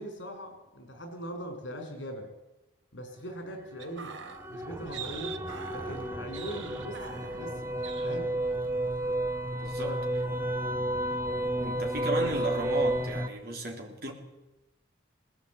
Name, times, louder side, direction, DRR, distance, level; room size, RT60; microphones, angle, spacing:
voice 1, 0.0-2.3 2.9-4.2 4.5-5.4 5.7-7.6 8.0-8.4 9.8-10.0, equal, 70° left, 5.0 m, -41 dB
sound 1, 3.5-13.3, right 1 dB, 15° right, 1.0 m, -32 dB
sound 2, 3.8-7.6 7.8-8.2 8.5-8.7, right 7 dB, 70° right, 1.3 m, -43 dB
voice 2, 9.5-10.0 11.6-14.1, right 2 dB, 50° right, 3.7 m, -35 dB
19.5 x 16.0 x 8.5 m
head